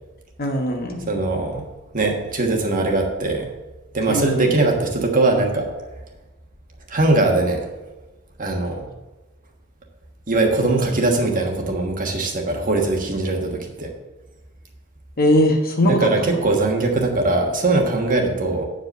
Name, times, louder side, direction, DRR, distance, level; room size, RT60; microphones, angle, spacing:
voice 1, 0.4-1.1 4.1-4.5 15.2-16.4, left 1 dB, 45° left, 3 dB, 1.3 m, -20 dB
voice 2, 1.1-1.6 1.9-3.5 3.9-5.7 6.9-7.6 8.4-8.8 10.3-13.9 15.8-18.7, right 2 dB, 40° right, 2 dB, 1.4 m, -21 dB
8.7 x 5.1 x 6.6 m, 1.1 s
head